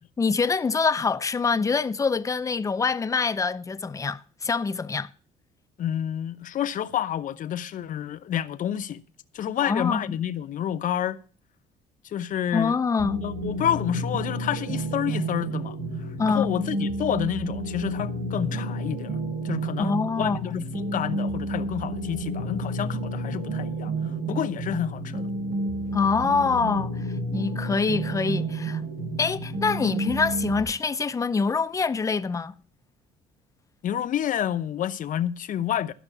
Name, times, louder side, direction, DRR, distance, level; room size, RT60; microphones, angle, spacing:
voice 1, 0.2-5.1 9.6-10.2 12.5-13.2 16.2-16.5 19.8-20.5 25.9-27.0 27.3-28.8 29.2-32.5, left 4 dB, 20° left, 0.5 m, -25 dB
voice 2, 5.8-9.0 9.3-11.2 12.0-12.8 13.2-15.8 16.3-19.2 19.4-23.9 24.3-25.3 33.8-35.9, left 10 dB, 50° left, 0.8 m, -29 dB
sound 1, 13.0-30.6, right 2 dB, 90° right, 3.3 m, -30 dB
12.0 x 5.8 x 8.0 m
cardioid pair, 110°, 17 cm